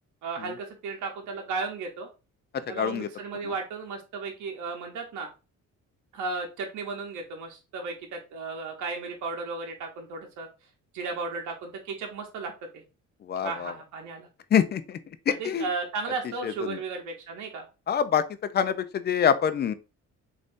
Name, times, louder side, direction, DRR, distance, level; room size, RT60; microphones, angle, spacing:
voice 1, 0.2-2.1 2.6-5.3 6.1-10.5 10.9-12.8 13.4-14.3 15.3-17.7, right 4 dB, 75° right, 0.8 m, -35 dB
voice 2, 2.8-3.1 13.3-13.7 14.5-15.0 15.3-15.7 16.4-16.8 17.9-18.2 18.5-19.7, left 8 dB, 35° left, 0.4 m, -25 dB
3.4 x 2.6 x 2.5 m
cardioid pair, 90°, 30 cm